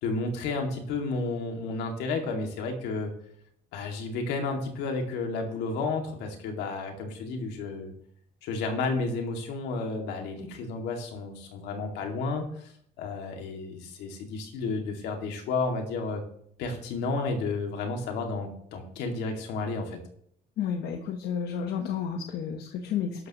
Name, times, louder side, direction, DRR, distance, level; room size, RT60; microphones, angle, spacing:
voice 1, 0.0-3.1 3.7-7.9 8.4-12.7 13.0-16.2 16.6-20.0, left 3 dB, 85° left, 3 dB, 2.4 m, -32 dB
voice 2, 20.6-23.3, left 7 dB, 70° left, 4 dB, 1.3 m, -31 dB
12.0 x 12.0 x 3.1 m, 0.67 s
cardioid pair, 110°, 17 cm